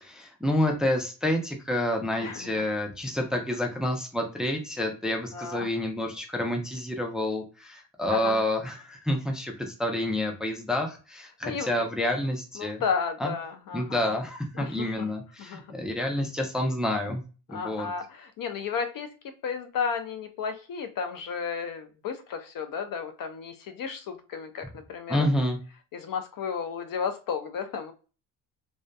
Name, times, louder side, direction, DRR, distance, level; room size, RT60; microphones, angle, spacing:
voice 1, 0.0-12.8 13.2-13.3 13.7-17.2 17.5-17.9 25.1-25.6, left 1 dB, ahead, 2 dB, 0.5 m, -28 dB
voice 2, 2.2-2.6 5.3-5.7 8.1-8.4 11.4-11.9 12.6-14.1 14.6-15.1 15.4-15.6 17.5-19.1 19.4-25.3 25.9-27.9, left 6 dB, 50° left, 8 dB, 0.5 m, -33 dB
2.6 x 2.2 x 2.2 m, 0.34 s
supercardioid pair, 85°, 45 cm